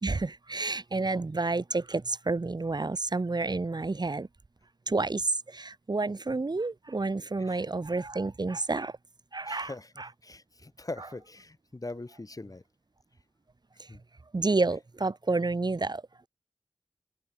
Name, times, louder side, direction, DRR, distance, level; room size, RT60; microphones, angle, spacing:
voice 1, 0.0-4.3 4.9-9.0 9.3-10.1 13.8-13.9 14.3-16.0, right 3 dB, 60° right, 2.4 m, -30 dB
voice 2, 9.4-12.6 13.9-14.0, left 2 dB, 45° left, 4.6 m, -42 dB
open air
cardioid pair, 40°, 8 cm